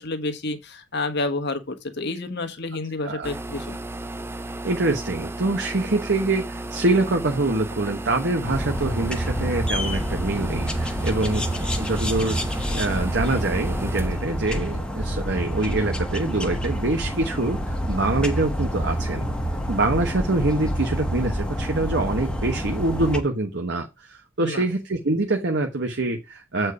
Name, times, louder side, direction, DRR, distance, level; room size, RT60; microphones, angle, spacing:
voice 1, 0.0-3.8 24.4-24.7, left 2 dB, 55° left, 1.3 m, -29 dB
sound 1, 3.2-15.6, right 2 dB, 10° right, 0.3 m, -35 dB
voice 2, 4.6-12.4 12.7-19.3 19.7-26.7, right 2 dB, 55° right, 1.1 m, -25 dB
sound 2, 8.5-23.2, equal, 5° left, 1.1 m, -27 dB
8.3 x 4.5 x 4.8 m
head